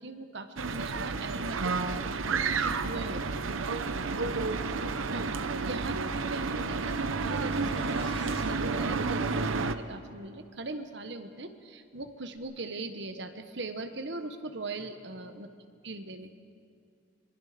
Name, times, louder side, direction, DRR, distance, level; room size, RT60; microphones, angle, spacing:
voice 1, 0.0-3.5 5.1-5.3 5.6-15.5 15.8-16.3, right 2 dB, 55° right, 8 dB, 1.2 m, -40 dB
sound 1, 0.6-9.7, right 4 dB, 80° right, 0.8 m, -31 dB
voice 2, 3.3-4.6 14.8-15.4, left 1 dB, 70° left, -3 dB, 4.7 m, -55 dB
sound 2, 7.2-8.5 12.4-12.5, left 1 dB, 30° left, 2.1 m, -47 dB
25.5 x 23.5 x 5.1 m, 2.3 s
head